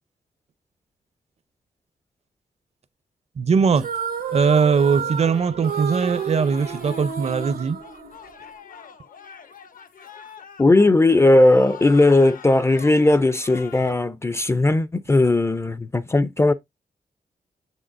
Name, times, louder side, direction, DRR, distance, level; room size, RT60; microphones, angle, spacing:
voice 1, 3.4-3.9 4.3-7.8, right 5 dB, 45° right, 0.5 m, -20 dB
sound 1, 3.7-8.6, right 7 dB, 85° right, 1.2 m, -31 dB
sound 2, 5.2-13.9, left 7 dB, 65° left, 0.7 m, -44 dB
voice 2, 10.6-16.5, left 2 dB, 20° left, 0.3 m, -17 dB
7.2 x 6.2 x 2.5 m
wide cardioid pair, 155°, 15 cm